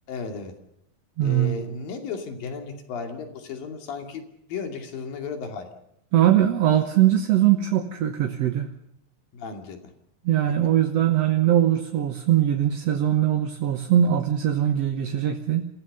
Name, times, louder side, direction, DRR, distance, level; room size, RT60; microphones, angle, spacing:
voice 1, 0.1-0.5 1.2-5.7 9.3-9.9 10.5-10.6, left 5 dB, 85° left, 5 dB, 4.4 m, -34 dB
voice 2, 1.2-1.7 6.1-8.7 10.2-15.7, right 11 dB, 60° right, 5 dB, 2.0 m, -21 dB
27.5 x 16.0 x 6.8 m, 0.77 s
omnidirectional pair, 3.9 m